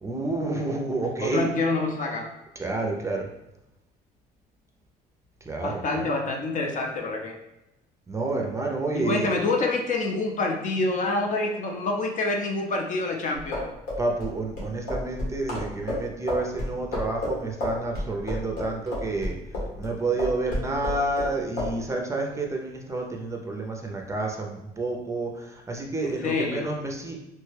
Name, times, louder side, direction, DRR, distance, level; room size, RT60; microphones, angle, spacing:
voice 1, 0.0-1.5 2.6-3.3 5.5-6.1 8.1-9.4 14.0-19.4 19.8-27.2, right 2 dB, 15° right, 1 dB, 0.5 m, -29 dB
voice 2, 1.2-2.3 5.6-7.4 8.9-13.6 26.0-26.7, left 3 dB, 50° left, 1 dB, 0.6 m, -27 dB
sound 1, 13.4-19.9 20.2-21.3 21.6-21.7, left 1 dB, 85° left, 1.3 m, -30 dB
3.1 x 2.2 x 3.2 m, 0.90 s
cardioid pair, 110°, 17 cm